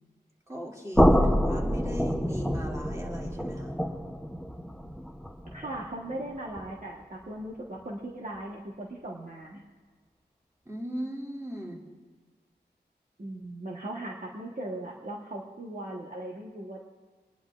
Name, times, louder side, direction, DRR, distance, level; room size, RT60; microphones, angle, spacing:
voice 1, 0.5-3.8 10.6-11.8, equal, 15° right, -3 dB, 2.6 m, -38 dB
sound 1, 0.9-6.8, equal, ahead, 0.8 m, -27 dB
voice 2, 5.5-9.6 13.2-16.8, right 1 dB, 50° right, -2 dB, 1.3 m, -38 dB
24.5 x 10.5 x 2.5 m, 1.3 s
wide cardioid pair, 50°, 18 cm